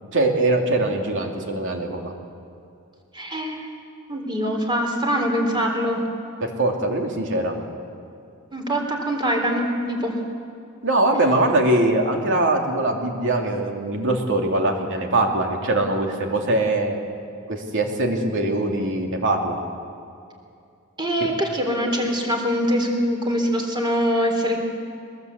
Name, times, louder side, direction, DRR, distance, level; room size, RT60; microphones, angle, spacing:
voice 1, 0.1-2.1 6.4-7.6 10.8-17.0 17.5-19.6, right 2 dB, 60° right, 2 dB, 2.9 m, -22 dB
voice 2, 3.1-3.7 4.1-6.0 8.5-10.1 21.0-24.6, equal, 20° right, 2 dB, 3.7 m, -23 dB
21.5 x 21.5 x 8.2 m, 2.5 s
head